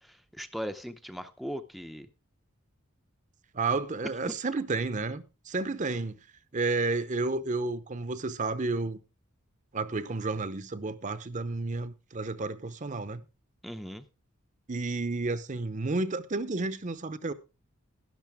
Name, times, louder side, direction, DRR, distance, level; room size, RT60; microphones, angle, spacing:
voice 1, 0.0-2.1 13.6-14.0, equal, ahead, 0.6 m, -39 dB
voice 2, 3.5-6.2 6.5-9.0 9.7-13.2 14.7-17.3, right 3 dB, 35° right, 0.7 m, -31 dB
12.0 x 11.0 x 3.5 m
head